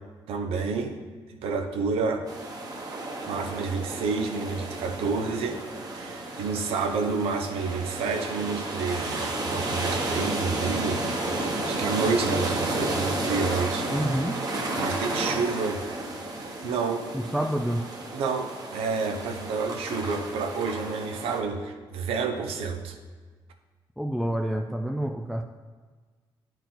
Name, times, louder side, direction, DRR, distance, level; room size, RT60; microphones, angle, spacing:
voice 1, 0.3-1.0 1.3-2.3 3.3-5.6 5.9-11.1 11.7-13.9 14.8-15.8 16.6-17.1 18.1-23.0, right 4 dB, 90° right, 5 dB, 0.8 m, -29 dB
sound 1, 2.3-21.4, right 2 dB, 40° right, 1.2 m, -32 dB
voice 2, 13.9-14.4 17.1-17.9 24.0-25.4, right 1 dB, ahead, 4 dB, 0.3 m, -28 dB
9.1 x 4.6 x 3.9 m, 1.4 s
cardioid pair, 105°, 10 cm